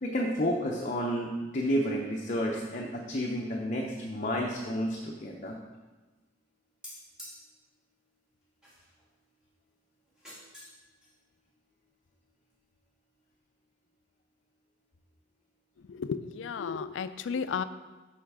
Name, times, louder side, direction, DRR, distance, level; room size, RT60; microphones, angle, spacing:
voice 1, 0.0-5.6, equal, 40° left, -1 dB, 0.7 m, -31 dB
sound 1, 6.8-7.4 8.6-9.0 10.1-10.8 11.0-11.1, left 1 dB, 5° right, 2.2 m, -47 dB
voice 2, 15.9-17.6, left 6 dB, 80° left, 13 dB, 0.4 m, -33 dB
6.4 x 5.8 x 4.8 m, 1.2 s
head